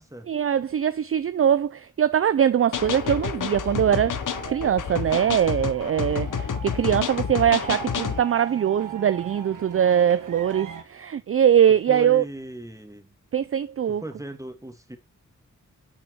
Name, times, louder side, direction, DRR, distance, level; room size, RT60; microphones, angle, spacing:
voice 1, 0.3-4.1 4.5-12.2 13.3-14.0, right 9 dB, 45° right, 0.4 m, -22 dB
sound 1, 2.7-8.2, left 7 dB, 80° left, 0.8 m, -29 dB
sound 2, 2.7-10.3, left 3 dB, 65° left, 3.6 m, -47 dB
sound 3, 2.7-10.8, right 7 dB, 90° right, 1.3 m, -41 dB
voice 2, 11.9-13.2 13.9-15.0, right 1 dB, 10° right, 1.6 m, -38 dB
8.9 x 4.4 x 2.9 m
cardioid pair, 55°, 31 cm